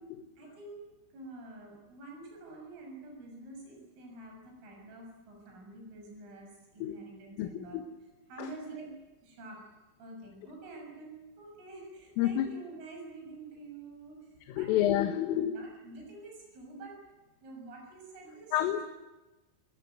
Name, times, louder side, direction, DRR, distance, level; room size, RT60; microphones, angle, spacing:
voice 1, 0.4-0.9 1.1-7.8 8.3-8.9 9.2-9.6 10.0-14.7 15.5-17.0 17.4-18.8, right 2 dB, 80° right, 1 dB, 9.5 m, -47 dB
voice 2, 7.4-7.8 8.4-8.5 12.2-12.5 14.5-15.6 18.5-18.9, left 11 dB, 85° left, 7 dB, 4.0 m, -29 dB
30.0 x 19.5 x 9.4 m, 1.1 s
omnidirectional pair, 5.7 m